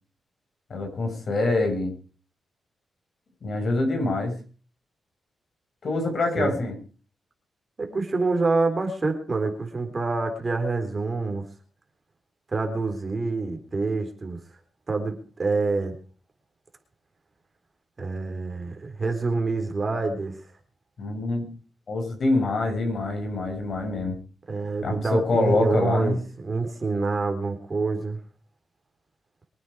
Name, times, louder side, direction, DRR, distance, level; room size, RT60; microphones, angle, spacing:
voice 1, 0.7-1.9 3.4-4.3 5.8-6.7 21.0-21.5 21.9-24.2 24.8-26.2, left 2 dB, 55° left, 3 dB, 6.6 m, -25 dB
voice 2, 7.8-11.4 12.5-14.4 14.9-15.9 18.0-20.4 24.5-28.2, right 3 dB, 30° right, 4 dB, 3.8 m, -27 dB
24.0 x 9.3 x 4.8 m, 0.39 s
cardioid pair, 110°, 0 cm